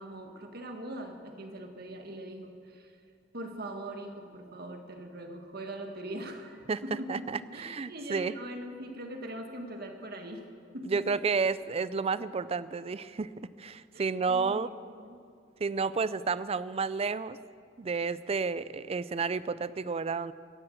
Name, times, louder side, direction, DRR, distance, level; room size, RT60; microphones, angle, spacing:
voice 1, 0.0-3.0 3.3-7.3 7.5-10.5 10.7-11.2 13.9-15.2, right 1 dB, 55° right, 4 dB, 1.6 m, -41 dB
voice 2, 7.1-8.3 10.8-13.3 13.6-14.7 15.6-17.4 17.8-20.3, right 4 dB, 30° right, 16 dB, 0.4 m, -31 dB
15.5 x 10.0 x 7.8 m, 2.3 s
head